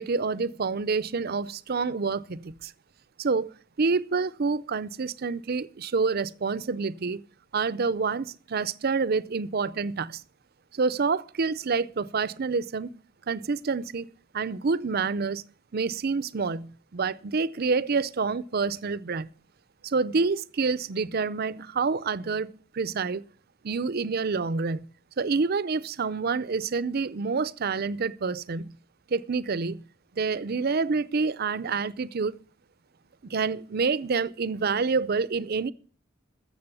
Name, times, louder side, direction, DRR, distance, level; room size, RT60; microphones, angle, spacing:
voice 1, 0.0-2.7 3.2-3.5 3.8-7.2 7.5-10.2 10.7-13.0 13.3-14.1 14.3-15.4 15.7-19.3 19.8-23.2 23.6-24.9 25.2-28.8 29.1-29.8 30.2-32.4 33.3-35.7, right 4 dB, 50° right, 0.5 m, -27 dB
14.0 x 7.4 x 6.8 m
head